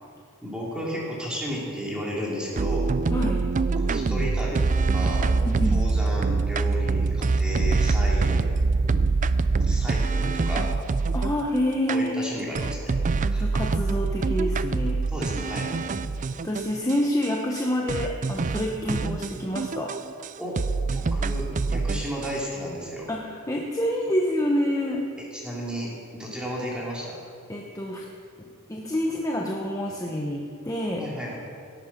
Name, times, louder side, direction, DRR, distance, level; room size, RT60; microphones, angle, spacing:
voice 1, 0.4-2.9 3.8-5.3 5.7-8.6 9.6-10.7 11.9-12.9 13.3-13.5 15.1-15.7 18.8-18.9 20.4-20.6 20.9-23.1 25.3-27.2 31.0-31.4, equal, 5° right, -5 dB, 3.2 m, -33 dB
sound 1, 2.6-11.4 11.9-12.0 12.5-17.0 17.2-17.3 17.6-17.7 17.9-20.3 20.6-22.3, right 4 dB, 35° right, 0.4 m, -24 dB
voice 2, 3.1-3.5 5.4-5.9 11.1-12.2 13.4-15.0 16.4-20.0 23.1-25.1 27.5-28.1 28.4-31.1, equal, 15° left, 0 dB, 0.9 m, -27 dB
17.5 x 8.9 x 6.1 m, 2.2 s
head